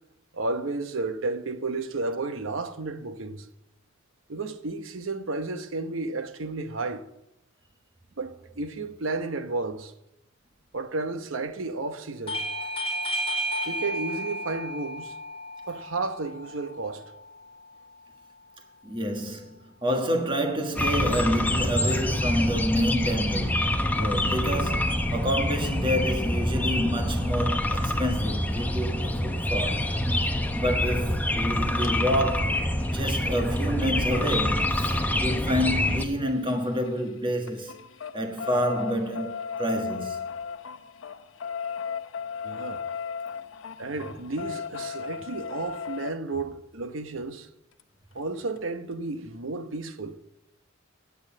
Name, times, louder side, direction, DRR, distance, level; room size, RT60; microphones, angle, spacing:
voice 1, 0.3-3.5 4.3-7.0 8.2-9.9 10.7-12.4 13.7-15.2 15.7-17.1 42.4-42.8 43.8-47.5 48.1-50.2, right 3 dB, 80° right, 0.9 m, -32 dB
Bell / Doorbell, 12.3-17.4, right 1 dB, 30° left, 1.2 m, -33 dB
voice 2, 18.8-29.9 30.5-37.8 38.1-40.2, equal, 25° right, 1.6 m, -28 dB
sound 1, 20.8-36.0, left 1 dB, 10° left, 0.8 m, -26 dB
sound 2, 31.8-31.9 33.6-37.1 37.4-46.1 47.8-47.9 48.2-48.3 48.6-48.7, left 6 dB, 80° left, 0.6 m, -36 dB
9.3 x 8.1 x 8.6 m
head